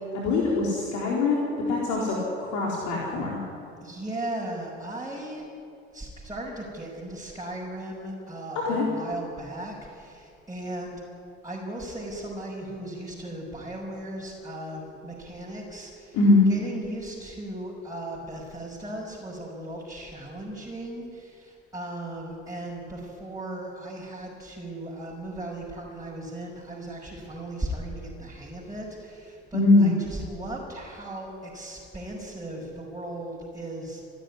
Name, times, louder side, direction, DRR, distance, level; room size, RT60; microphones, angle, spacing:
voice 1, 0.1-3.4 8.6-8.8 16.1-16.4 29.5-29.9, left 3 dB, 55° left, -3 dB, 4.2 m, -22 dB
voice 2, 3.8-5.4 5.9-11.0 11.4-16.2 16.5-34.1, right 1 dB, 10° right, -4 dB, 6.0 m, -37 dB
30.0 x 12.0 x 10.0 m, 2.5 s
figure-of-eight pair, 55°, 34 cm